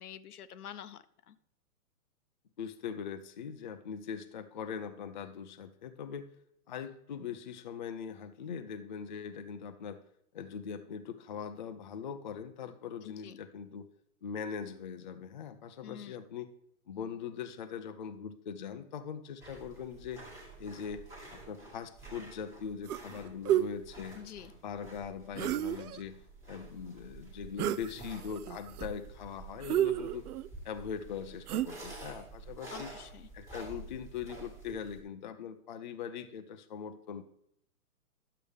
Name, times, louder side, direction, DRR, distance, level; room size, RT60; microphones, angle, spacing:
voice 1, 0.0-1.4 13.0-13.4 15.8-16.2 24.1-24.5 32.7-33.3, left 9 dB, 80° left, 12 dB, 0.8 m, -47 dB
voice 2, 2.6-6.3 6.7-10.0 10.3-13.9 14.2-16.5 16.9-20.2 20.6-21.1 21.3-24.2 24.6-26.2 26.5-30.2 30.6-32.9 33.3-37.2, left 7 dB, 35° left, 8 dB, 0.4 m, -41 dB
sound 1, 19.4-35.0, right 3 dB, 5° right, 1.5 m, -49 dB
sound 2, 22.9-23.1 23.4-23.7 25.3-26.0 27.6-27.9 28.3-28.9 29.6-30.5 31.5-32.0, right 12 dB, 80° right, 0.5 m, -30 dB
10.5 x 6.7 x 3.3 m, 0.71 s
hypercardioid pair, 155°, 44 cm